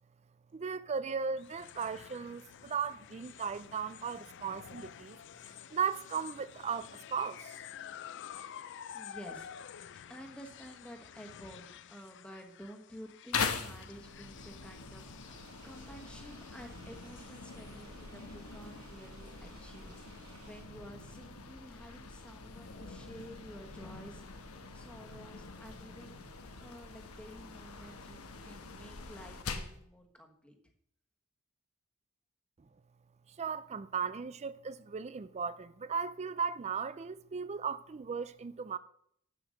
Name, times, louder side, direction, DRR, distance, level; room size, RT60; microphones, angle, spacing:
voice 1, 0.5-5.2 5.5-7.6 33.4-38.8, right 6 dB, 30° right, 0.4 m, -37 dB
sound 1, 1.4-17.8, left 9 dB, 55° left, 0.4 m, -50 dB
voice 2, 8.9-9.5 10.1-26.2 26.6-30.6, equal, 5° left, 1.3 m, -51 dB
sound 2, 13.3-29.8, left 5 dB, 90° left, 1.2 m, -43 dB
sound 3, 15.2-20.6, right 3 dB, 70° right, 3.4 m, -58 dB
7.9 x 7.6 x 6.4 m
head